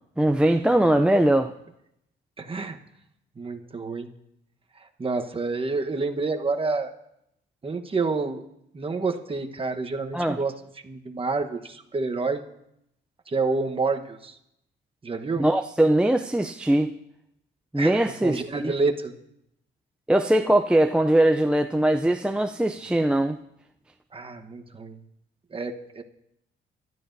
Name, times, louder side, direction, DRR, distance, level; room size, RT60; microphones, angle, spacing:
voice 1, 0.2-1.5 10.1-10.4 15.4-16.9 17.7-18.7 20.1-23.4, right 1 dB, 5° right, 5 dB, 0.5 m, -21 dB
voice 2, 2.4-2.8 3.4-4.1 5.0-6.9 7.6-8.4 8.7-10.5 10.8-12.4 13.3-14.4 15.0-15.5 17.8-19.1 24.1-25.0 25.5-26.0, right 3 dB, 25° right, 5 dB, 1.2 m, -28 dB
23.5 x 12.5 x 2.7 m, 0.78 s
cardioid pair, 90°, 20 cm